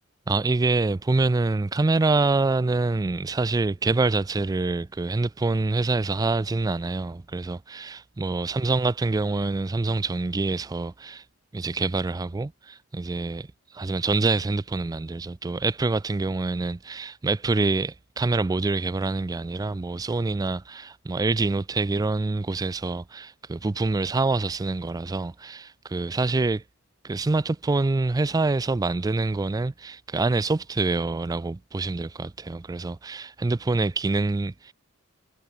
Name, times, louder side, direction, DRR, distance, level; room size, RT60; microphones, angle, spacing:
voice 1, 0.3-11.3 11.5-26.6 27.0-34.7, right 3 dB, 15° right, 0.3 m, -26 dB
head